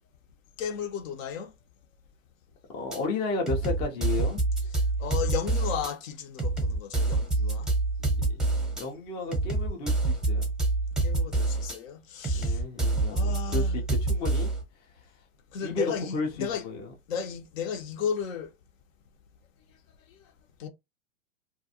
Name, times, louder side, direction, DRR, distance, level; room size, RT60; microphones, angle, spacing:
voice 1, 0.6-1.5 5.0-7.7 11.0-12.6 13.1-13.9 15.5-16.6 17.1-18.5 20.6-20.7, left 7 dB, 70° left, 0.8 m, -34 dB
voice 2, 2.7-4.4 8.2-10.5 12.3-14.5 15.6-16.9, left 3 dB, 15° left, 0.3 m, -33 dB
sound 1, 2.9-3.0 3.5-5.9 6.4-8.8 9.3-11.8 12.2-14.6, right 2 dB, ahead, 0.7 m, -27 dB
2.4 x 2.2 x 2.7 m
hypercardioid pair, 120°, 41 cm